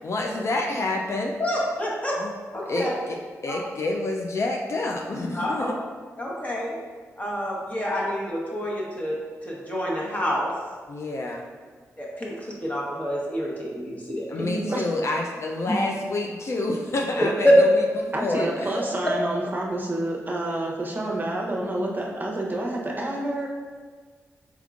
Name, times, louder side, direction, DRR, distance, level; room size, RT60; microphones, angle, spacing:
voice 1, 0.0-1.3 2.2-2.3 2.7-3.2 3.4-5.7 10.9-11.5 14.3-18.8, left 2 dB, 50° left, 1 dB, 0.4 m, -28 dB
voice 2, 1.4-2.2 2.5-2.9 3.5-3.6 5.3-5.7 6.2-6.8 7.2-9.2 9.4-10.5 12.0-14.5 17.4-17.6 19.0-19.1, equal, 25° left, -4 dB, 1.1 m, -26 dB
voice 3, 14.4-14.8 18.1-23.5, right 1 dB, 35° right, -2 dB, 0.8 m, -28 dB
4.5 x 3.6 x 2.4 m, 1.5 s
cardioid pair, 60°, 6 cm